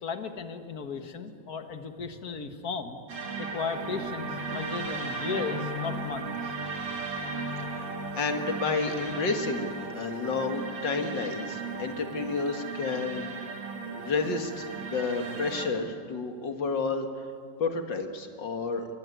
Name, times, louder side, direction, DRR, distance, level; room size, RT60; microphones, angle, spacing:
voice 1, 0.0-3.0 3.4-6.5, left 5 dB, 55° left, 8 dB, 2.0 m, -35 dB
sound 1, 3.1-15.7, right 3 dB, 75° right, 2.8 m, -36 dB
voice 2, 7.6-13.6 13.9-17.3 17.6-18.9, left 4 dB, 80° left, 6 dB, 2.4 m, -31 dB
23.5 x 20.5 x 9.4 m, 2.2 s
omnidirectional pair, 1.9 m